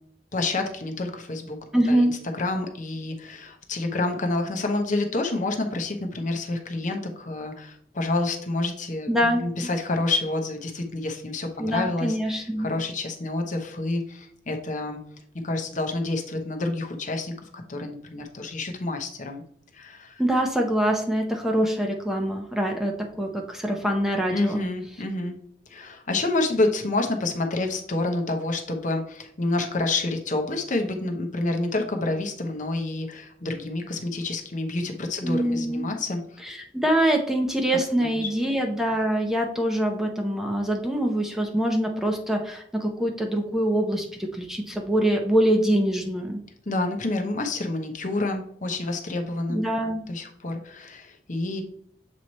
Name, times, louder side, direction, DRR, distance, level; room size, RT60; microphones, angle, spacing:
voice 1, 0.3-9.1 9.4-15.0 15.3-19.4 19.7-20.2 24.3-25.4 25.7-36.2 38.0-38.3 46.7-49.6 50.1-51.6, left 2 dB, 45° left, 4 dB, 0.9 m, -28 dB
voice 2, 1.7-2.1 9.1-9.5 11.6-12.7 20.2-24.6 35.2-35.9 36.4-46.4 49.5-50.0, right 1 dB, ahead, 2 dB, 0.7 m, -24 dB
7.4 x 3.1 x 4.1 m, 0.66 s
head